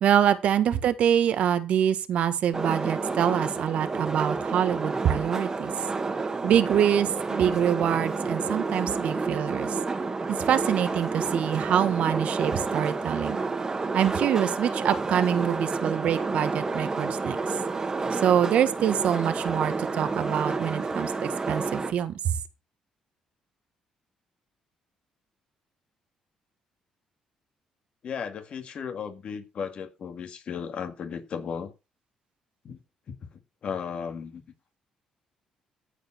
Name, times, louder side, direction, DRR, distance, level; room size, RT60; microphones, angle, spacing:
voice 1, 0.0-5.7 6.4-9.8 10.3-13.4 13.9-17.6 18.1-22.3, right 9 dB, 70° right, 1.5 m, -25 dB
sound 1, 2.5-21.9, right 3 dB, 30° right, 1.7 m, -30 dB
voice 2, 28.0-31.7 32.6-32.8 33.1-33.2 33.6-34.4, left 6 dB, 55° left, 2.2 m, -35 dB
14.5 x 5.0 x 5.9 m
cardioid pair, 95°, 2 cm